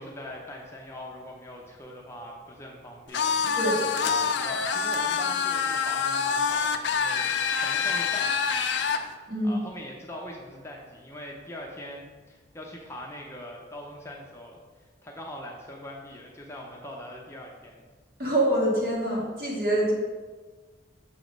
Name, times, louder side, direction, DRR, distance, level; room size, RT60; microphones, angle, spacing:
voice 1, 0.0-3.5 4.0-17.8, equal, 15° left, -1 dB, 0.6 m, -42 dB
sound 1, 3.1-9.0, left 6 dB, 70° left, 0.4 m, -26 dB
voice 2, 18.2-19.9, right 1 dB, 55° right, -4 dB, 1.8 m, -25 dB
6.9 x 3.2 x 5.1 m, 1.4 s
head